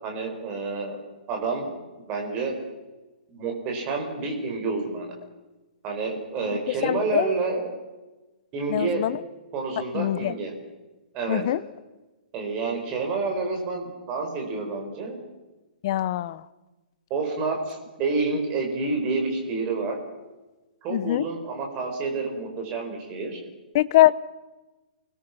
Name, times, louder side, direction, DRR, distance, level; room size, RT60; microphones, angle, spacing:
voice 1, 0.0-1.0 1.3-1.7 2.1-2.6 3.3-5.1 5.8-7.7 8.5-9.0 9.5-10.5 11.1-11.4 12.3-15.2 17.1-20.0 20.8-23.4, right 3 dB, 20° right, 2 dB, 4.4 m, -29 dB
voice 2, 6.8-7.3 8.7-9.2 9.9-10.3 11.3-11.6 15.8-16.4 20.9-21.3 23.7-24.1, left 14 dB, 30° left, 18 dB, 0.6 m, -22 dB
29.0 x 20.5 x 5.9 m, 1.1 s
hypercardioid pair, 175°, 5 cm